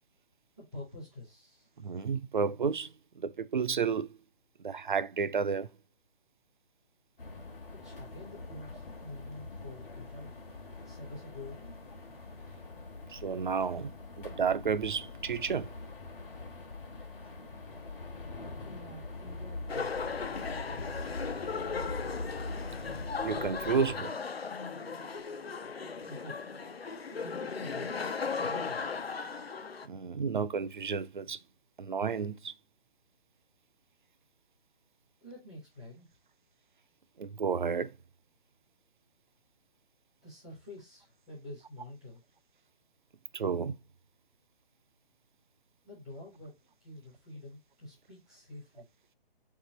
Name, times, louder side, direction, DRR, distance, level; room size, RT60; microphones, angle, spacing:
voice 1, 0.6-1.7 7.7-10.3 10.8-11.7 18.6-19.9 20.7-21.2 26.0-26.4 27.1-28.0 28.4-28.9 35.2-36.1 40.2-42.2 45.8-48.9, left 1 dB, 5° left, 0.4 m, -48 dB
voice 2, 1.8-4.1 4.6-5.7 13.1-15.7 23.2-24.2 29.8-31.4 31.8-32.5 37.2-38.0 43.3-43.7, right 6 dB, 55° right, 0.4 m, -31 dB
sound 1, 7.2-24.0, left 3 dB, 65° left, 1.1 m, -43 dB
sound 2, 19.7-29.9, left 5 dB, 85° left, 0.6 m, -37 dB
3.7 x 3.7 x 3.7 m
figure-of-eight pair, 140°, 30 cm